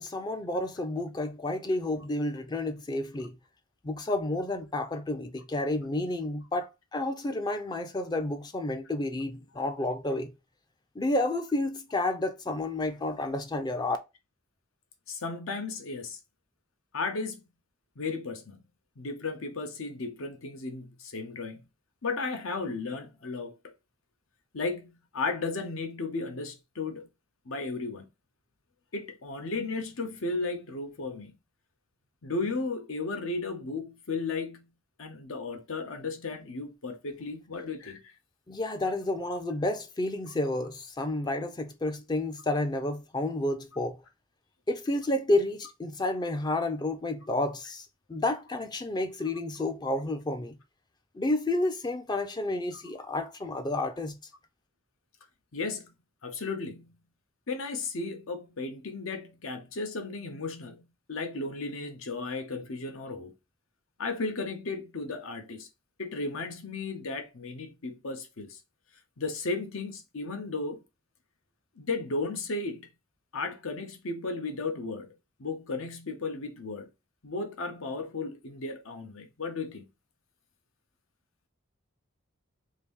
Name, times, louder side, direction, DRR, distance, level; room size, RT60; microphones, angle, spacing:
voice 1, 0.0-3.3 3.8-10.3 11.0-14.0 38.5-44.0 44.7-50.6 51.1-54.2, left 2 dB, 20° left, 0.4 m, -30 dB
voice 2, 15.1-16.2 16.9-17.4 18.0-18.6 19.0-21.6 22.0-23.7 24.5-27.1 27.5-28.1 28.9-31.3 32.2-34.7 35.0-38.1 52.7-52.8 55.5-55.9 56.2-57.0 57.5-63.3 64.0-65.7 66.0-68.6 69.2-70.8 71.8-72.9 73.3-75.1 75.4-76.9 77.2-79.8, left 3 dB, 80° left, 0.8 m, -35 dB
2.9 x 2.6 x 3.5 m
head